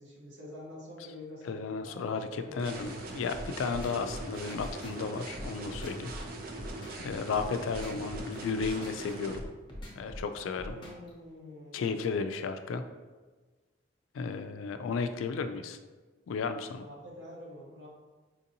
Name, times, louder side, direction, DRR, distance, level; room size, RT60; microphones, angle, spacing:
voice 1, 0.0-2.8 10.6-11.9 16.8-17.9, left 1 dB, 70° right, -5 dB, 1.1 m, -47 dB
voice 2, 1.4-6.1 7.0-9.4 9.9-10.7 11.7-12.8 14.1-15.8 16.3-16.8, left 5 dB, 85° left, 8 dB, 0.3 m, -34 dB
sound 1, 2.6-9.4, right 2 dB, 45° right, 0.4 m, -41 dB
sound 2, 3.3-11.1, left 1 dB, 25° left, 0.6 m, -43 dB
4.4 x 2.6 x 2.7 m, 1.3 s
head